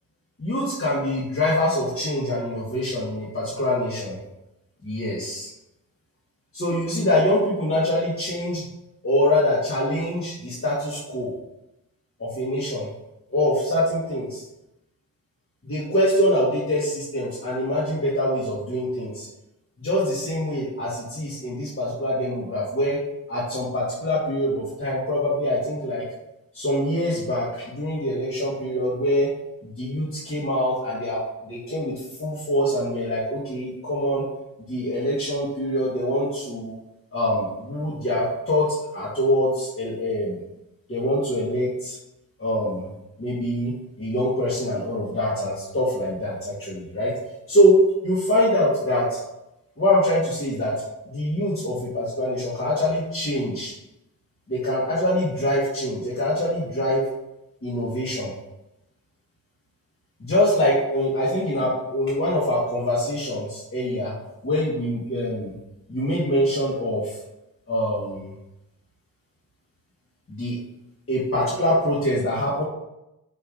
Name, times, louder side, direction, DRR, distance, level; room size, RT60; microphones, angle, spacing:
voice 1, 0.4-4.2 4.8-5.5 6.5-8.6 9.0-11.3 12.2-12.9 13.3-14.4 15.6-19.3 19.8-23.0 23.3-26.0 26.5-29.3 29.6-31.2 31.4-31.9 32.2-34.2 34.7-36.7 37.1-38.6 38.9-40.4 40.9-42.0 42.4-42.9 43.2-43.7 44.0-47.1 47.5-47.7 48.0-49.2 49.8-50.7 51.1-53.7 54.5-57.0 57.6-58.3 60.2-64.1 64.4-65.5 65.9-67.1 67.7-68.3 70.3-70.5 71.1-72.6, left 1 dB, 35° left, -8 dB, 1.9 m, -24 dB
5.5 x 3.4 x 5.1 m, 0.91 s
cardioid pair, 75°, 37 cm